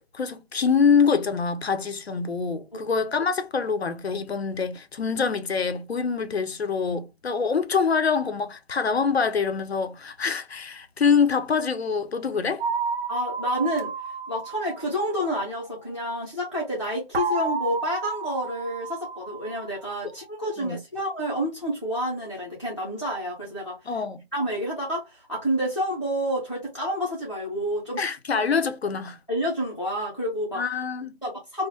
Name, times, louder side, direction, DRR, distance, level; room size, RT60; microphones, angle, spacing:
voice 1, 0.1-12.6 20.6-20.8 23.9-24.2 28.0-29.2 30.5-31.1, left 5 dB, 85° left, 0.6 m, -25 dB
sound 1, 12.6-15.5 17.1-20.0, right 4 dB, 70° right, 0.6 m, -31 dB
voice 2, 13.1-13.9 14.3-23.9 24.3-28.4 29.3-30.6 31.2-31.7, equal, 30° left, 0.5 m, -29 dB
2.3 x 2.0 x 2.7 m
figure-of-eight pair, 170°, 31 cm